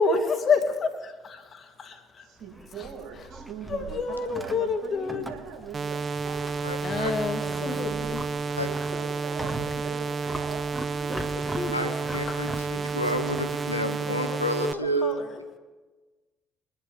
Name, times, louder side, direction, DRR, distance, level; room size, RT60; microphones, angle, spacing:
voice 1, 0.0-2.3 2.8-3.3 3.7-5.3 6.8-8.3 8.6-9.2 11.1-12.7 14.0-15.4, left 4 dB, 40° left, 5 dB, 2.1 m, -30 dB
voice 2, 2.2-6.7 7.4-8.3 8.6-11.1 12.7-13.0 13.6-13.7, right 7 dB, 55° right, -2 dB, 4.5 m, -41 dB
Livestock farm animals working animals, 2.4-14.0, right 1 dB, 10° right, 1.7 m, -41 dB
sound 1, 5.7-14.7, right 4 dB, 35° right, 0.6 m, -31 dB
voice 3, 6.6-7.1 8.6-8.7 11.7-12.5 12.9-15.2, right 1 dB, 90° left, 6 dB, 1.1 m, -29 dB
23.5 x 11.0 x 3.4 m, 1.3 s
figure-of-eight pair, 50°, 0 cm